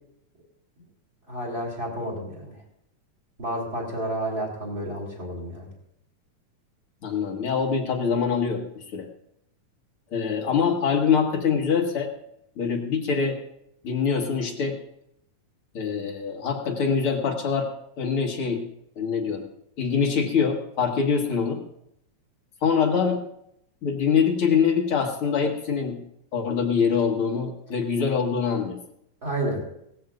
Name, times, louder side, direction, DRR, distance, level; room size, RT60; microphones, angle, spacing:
voice 1, 1.3-2.5 3.4-5.7 29.2-29.6, right 1 dB, 30° right, -2 dB, 3.3 m, -30 dB
voice 2, 7.0-8.6 8.9-9.1 10.1-12.1 12.6-13.4 13.8-14.8 15.7-17.7 18.0-18.6 19.0-19.4 19.8-21.6 22.6-23.2 23.8-26.0 26.3-28.8, left 6 dB, 50° left, 2 dB, 2.1 m, -24 dB
19.0 x 15.5 x 2.5 m, 0.76 s
omnidirectional pair, 3.6 m